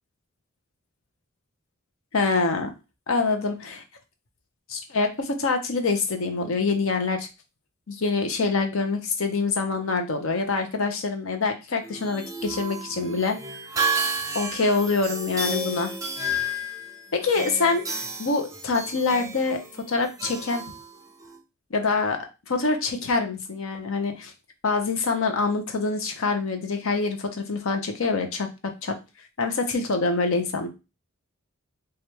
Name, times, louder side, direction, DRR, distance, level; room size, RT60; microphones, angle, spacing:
voice 1, 2.1-2.7 3.1-3.8 4.7-7.3 7.9-13.4 14.3-15.9 17.1-19.6 19.9-20.6 21.7-22.2 22.5-24.3 24.6-28.9 29.4-30.7, left 4 dB, 70° left, 5 dB, 0.8 m, -25 dB
sound 1, 11.8-21.4, right 1 dB, 15° right, 0.6 m, -32 dB
3.2 x 2.4 x 4.4 m, 0.27 s
head